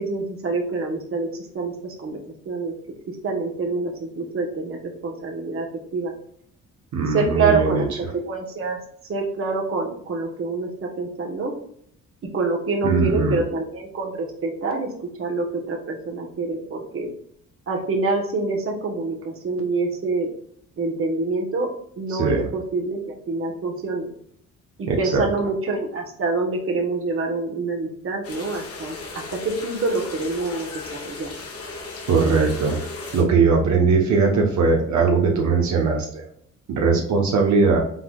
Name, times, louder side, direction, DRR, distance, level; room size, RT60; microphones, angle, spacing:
voice 1, 0.0-2.2 2.5-2.7 3.2-5.7 5.9-6.1 7.1-8.8 9.1-11.5 12.3-14.9 15.2-17.1 17.7-20.3 20.8-21.7 22.0-24.1 24.8-30.7 31.0-31.3, right 3 dB, 45° right, 1 dB, 1.3 m, -26 dB
voice 2, 6.9-7.8 12.8-13.4 22.1-22.5 24.9-25.3 32.1-32.8 33.1-36.2 36.7-37.8, right 4 dB, 70° right, 0 dB, 1.1 m, -20 dB
sound 1, 28.2-33.2, left 3 dB, 50° left, 1.3 m, -36 dB
5.4 x 3.9 x 2.4 m, 0.66 s
cardioid pair, 90°, 30 cm